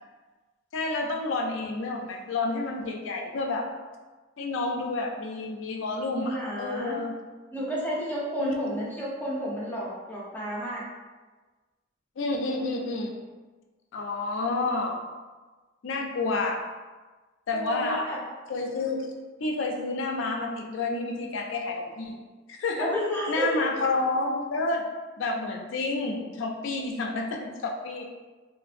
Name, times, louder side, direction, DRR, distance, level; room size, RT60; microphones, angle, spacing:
voice 1, 0.7-3.7 4.4-7.1 8.4-8.8 12.2-13.1 13.9-15.0 15.8-16.7 17.5-18.1 18.5-19.1 19.4-22.2 22.5-22.9 23.3-24.8 25.2-28.1, left 3 dB, 70° left, 1 dB, 0.4 m, -29 dB
voice 2, 6.1-7.0 7.5-10.8 17.5-18.2 22.8-23.6, equal, 10° left, -7 dB, 0.7 m, -31 dB
2.6 x 2.4 x 2.4 m, 1.3 s
head